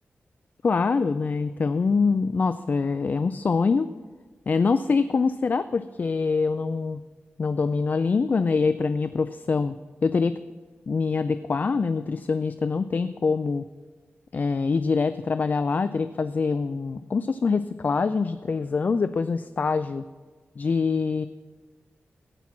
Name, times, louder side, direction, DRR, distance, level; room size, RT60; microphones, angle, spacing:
voice 1, 0.6-3.9 4.5-7.0 7.4-9.7 10.0-10.4 10.9-13.6 14.3-20.0 20.6-21.3, left 4 dB, 45° left, 12 dB, 0.3 m, -24 dB
16.5 x 5.9 x 6.0 m, 1.4 s
wide cardioid pair, 120°, 4 cm